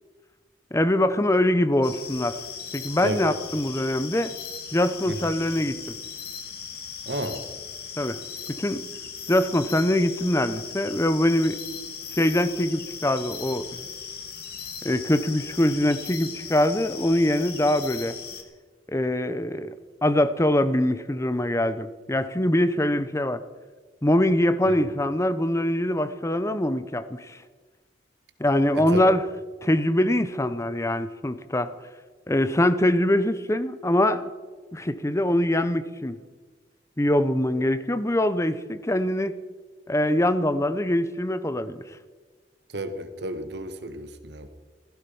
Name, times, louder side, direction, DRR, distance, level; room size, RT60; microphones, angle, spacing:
voice 1, 0.7-2.4 2.7-4.3 4.7-5.8 8.0-8.2 8.5-8.8 9.3-11.6 12.2-13.8 14.8-18.2 18.9-19.7 20.0-23.4 24.0-27.4 28.4-29.2 29.6-31.7 32.3-34.3 34.7-36.1 37.0-39.4 39.9-41.8, left 1 dB, 15° left, 13 dB, 0.8 m, -23 dB
sound 1, 1.8-18.4, left 7 dB, 60° left, 2.0 m, -38 dB
voice 2, 3.0-3.4 5.1-5.3 7.0-7.4 24.7-24.8 28.7-29.1 42.7-44.5, right 1 dB, 70° right, 9 dB, 1.5 m, -32 dB
15.5 x 15.5 x 5.5 m, 1.4 s
head